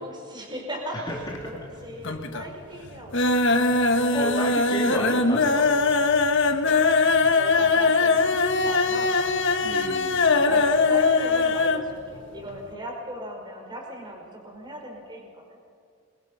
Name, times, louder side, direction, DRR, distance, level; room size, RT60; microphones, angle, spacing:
voice 1, 0.0-3.6 7.3-9.8 10.5-15.6, equal, 20° right, 1 dB, 5.2 m, -38 dB
sound 1, 1.1-1.7 2.0-2.5 2.8-11.9 12.1-12.2 12.6-12.7, left 3 dB, 55° left, 1.4 m, -21 dB
voice 2, 4.1-5.9 9.6-10.2, left 1 dB, 20° left, -3 dB, 2.8 m, -32 dB
27.5 x 23.0 x 5.7 m, 2.3 s
head